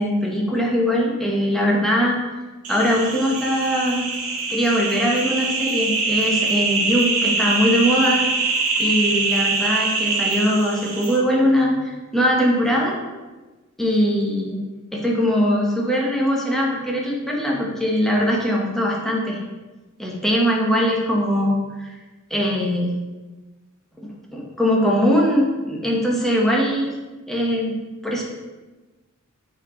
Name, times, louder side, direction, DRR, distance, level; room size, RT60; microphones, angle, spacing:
voice 1, 0.0-2.2 2.7-4.1 4.5-8.2 8.8-13.0 13.8-14.6 14.9-19.4 20.0-21.9 22.3-22.9 24.3-26.9 27.3-27.7 28.0-28.2, equal, ahead, -3 dB, 1.1 m, -21 dB
sound 1, 2.6-11.2, right 3 dB, 90° right, 1.4 m, -23 dB
7.2 x 4.4 x 3.9 m, 1.2 s
head